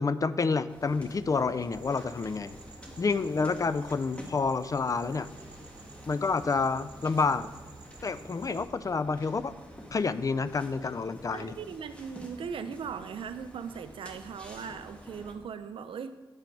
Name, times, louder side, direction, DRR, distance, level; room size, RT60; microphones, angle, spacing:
voice 1, 0.0-2.6 3.0-5.3 6.1-7.5 8.0-9.5 9.9-11.6, left 4 dB, 40° left, 14 dB, 0.4 m, -29 dB
sound 1, 0.7-15.4, equal, 15° left, 1.4 m, -49 dB
sound 2, 1.7-8.6, right 3 dB, 50° right, 1.1 m, -51 dB
voice 2, 11.3-16.1, right 6 dB, 75° right, 11 dB, 0.5 m, -39 dB
8.2 x 4.4 x 5.2 m, 1.2 s
cardioid pair, 60°, 9 cm